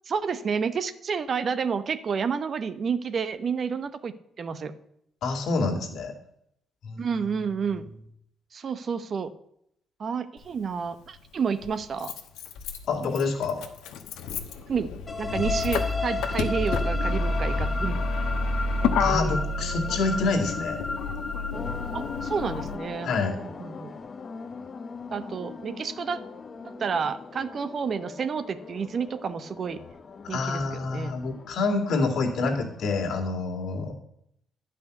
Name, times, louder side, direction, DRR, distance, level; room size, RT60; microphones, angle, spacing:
voice 1, 0.1-4.7 7.0-7.8 8.5-9.3 10.0-12.1 14.7-14.9 15.2-18.0 21.9-23.9 25.1-26.2 26.8-29.8 30.3-31.1, right 6 dB, 50° right, 12 dB, 0.9 m, -30 dB
voice 2, 5.2-6.1 6.8-7.1 12.9-13.6 19.0-20.8 23.0-23.4 26.6-26.8 30.2-33.9, left 3 dB, 70° left, 2 dB, 2.4 m, -27 dB
Motor vehicle (road), 10.4-10.5 11.6-22.8, left 3 dB, 90° left, 1.1 m, -29 dB
sound 1, 15.1-22.9, left 3 dB, 15° left, 1.2 m, -34 dB
sound 2, 21.5-33.1, left 5 dB, 40° left, 0.9 m, -41 dB
10.5 x 5.7 x 8.2 m, 0.73 s
cardioid pair, 90°, 0 cm